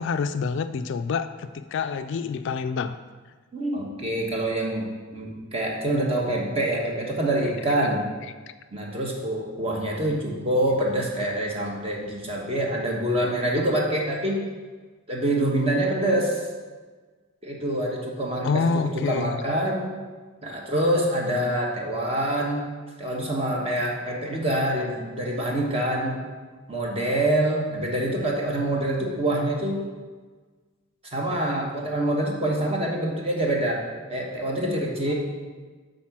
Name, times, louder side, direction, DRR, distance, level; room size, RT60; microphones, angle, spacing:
voice 1, 0.0-3.0 18.4-19.4, left 5 dB, 55° left, 10 dB, 0.3 m, -27 dB
voice 2, 3.5-8.0 8.7-14.4 15.1-16.4 17.4-19.9 20.4-22.7 23.0-26.2 26.7-29.8 31.1-33.8 34.1-35.1, right 1 dB, 30° right, -1 dB, 1.3 m, -26 dB
8.7 x 4.0 x 6.0 m, 1.4 s
head